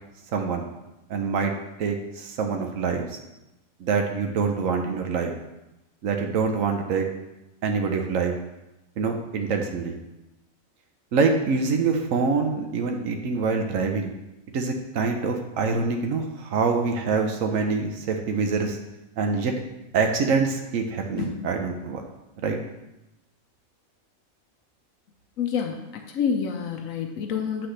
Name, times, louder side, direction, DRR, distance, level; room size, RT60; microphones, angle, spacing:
voice 1, 0.3-0.6 1.1-1.5 1.8-3.0 3.8-5.3 6.0-7.0 7.6-8.4 9.0-10.0 11.1-14.1 14.5-18.8 19.2-19.5 19.9-22.0 22.4-22.6, right 4 dB, 75° right, 3 dB, 1.2 m, -25 dB
voice 2, 21.2-21.5 25.4-27.7, left 7 dB, 80° left, 5 dB, 1.1 m, -28 dB
8.1 x 6.0 x 3.3 m, 0.95 s
omnidirectional pair, 1.4 m